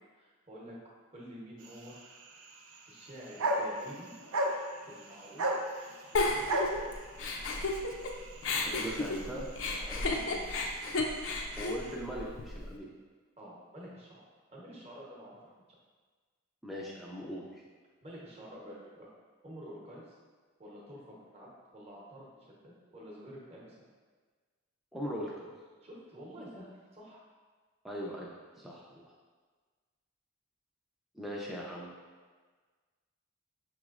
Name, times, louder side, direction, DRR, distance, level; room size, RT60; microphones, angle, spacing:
voice 1, 0.1-0.8 1.1-2.0 2.9-4.1 4.9-5.6 6.1-6.9 8.7-9.1 9.8-10.6 13.4-15.5 18.0-19.1 19.4-20.2 20.6-22.3 22.6-23.8 25.8-27.2, equal, 30° right, -4 dB, 0.8 m, -49 dB
sound 1, 1.6-11.9, right 1 dB, 85° right, 0.5 m, -38 dB
Giggle, 6.1-8.1 8.4-12.7, left 2 dB, 65° left, 0.4 m, -33 dB
voice 2, 8.8-9.5 11.6-12.9 16.6-17.6 24.9-25.5 27.8-28.3 28.6-29.0 31.1-31.9, equal, ahead, -4 dB, 0.3 m, -39 dB
5.9 x 3.0 x 2.4 m, 1.5 s
head